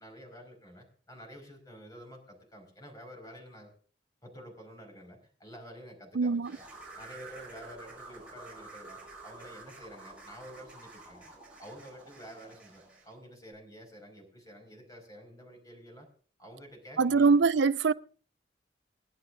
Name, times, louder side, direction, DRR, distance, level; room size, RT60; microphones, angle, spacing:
voice 1, 0.0-3.7 4.2-6.6 6.9-11.3 11.6-16.1 16.4-17.4, equal, 20° left, 5.2 m, -49 dB
voice 2, 6.1-6.5 17.0-17.9, right 4 dB, 85° right, 0.5 m, -23 dB
sound 1, 6.4-13.1, right 3 dB, 5° right, 6.9 m, -49 dB
29.5 x 10.5 x 2.6 m
head